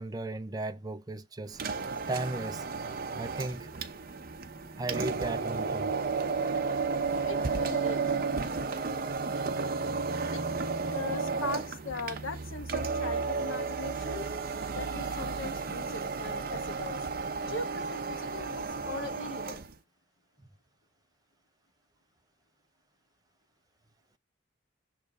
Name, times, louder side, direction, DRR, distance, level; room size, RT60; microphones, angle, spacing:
voice 1, 0.0-1.6 2.1-2.6 3.2-3.7 4.8-5.9, right 2 dB, 20° right, 0.4 m, -35 dB
sound 1, 1.5-19.7, right 4 dB, 45° right, 0.8 m, -33 dB
voice 2, 7.2-8.2 10.3-10.4 10.9-14.3 14.7-19.6, left 3 dB, 75° left, 1.1 m, -40 dB
6.6 x 3.4 x 4.7 m
head